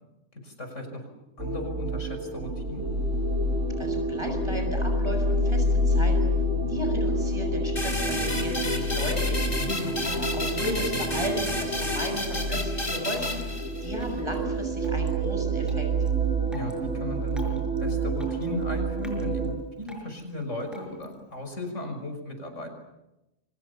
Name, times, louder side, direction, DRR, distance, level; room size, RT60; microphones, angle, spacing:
voice 1, 0.4-2.9 9.6-10.3 16.5-22.7, left 1 dB, 75° left, 5 dB, 6.3 m, -36 dB
sound 1, 1.4-19.6, right 1 dB, 85° right, 4.5 m, -28 dB
voice 2, 3.8-6.3 6.7-9.6 10.0-15.9, equal, 20° right, 4 dB, 7.4 m, -35 dB
sound 2, 7.8-14.1, left 1 dB, 45° left, 4.3 m, -32 dB
Drip, 9.5-21.5, left 1 dB, ahead, 5.4 m, -51 dB
29.5 x 25.0 x 7.0 m, 0.91 s
omnidirectional pair, 1.3 m